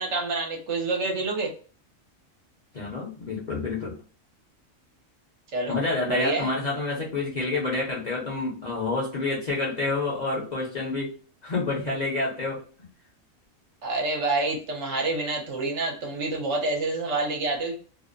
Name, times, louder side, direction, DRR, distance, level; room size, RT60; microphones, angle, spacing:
voice 1, 0.0-1.5 5.5-5.8 6.0-6.5 13.8-17.7, right 2 dB, 65° right, 1.0 m, -27 dB
voice 2, 2.7-4.0 5.7-11.1 11.4-12.9, left 3 dB, 40° left, 0.7 m, -28 dB
2.6 x 2.0 x 2.4 m
omnidirectional pair, 1.4 m